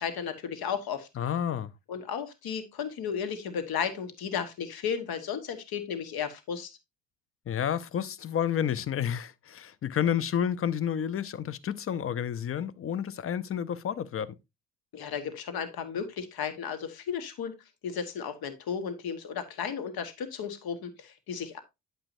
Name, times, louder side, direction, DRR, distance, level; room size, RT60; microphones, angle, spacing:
voice 1, 0.0-1.1 1.9-6.8 14.9-17.5 17.8-21.6, left 7 dB, 55° left, 1.4 m, -34 dB
voice 2, 1.2-1.7 7.5-14.4, left 9 dB, 30° left, 0.6 m, -30 dB
8.8 x 7.0 x 2.6 m
hypercardioid pair, 55°, 45 cm